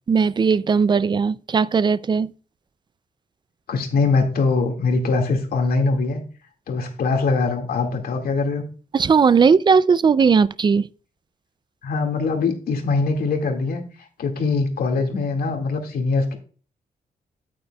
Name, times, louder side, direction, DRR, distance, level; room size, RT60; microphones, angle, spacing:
voice 1, 0.1-2.3 8.9-10.9, right 5 dB, 30° right, 0.3 m, -17 dB
voice 2, 3.7-6.2 6.7-8.6 11.8-13.8 14.2-16.4, left 4 dB, 75° left, 2.0 m, -22 dB
9.5 x 8.9 x 2.3 m
wide cardioid pair, 135°, 15 cm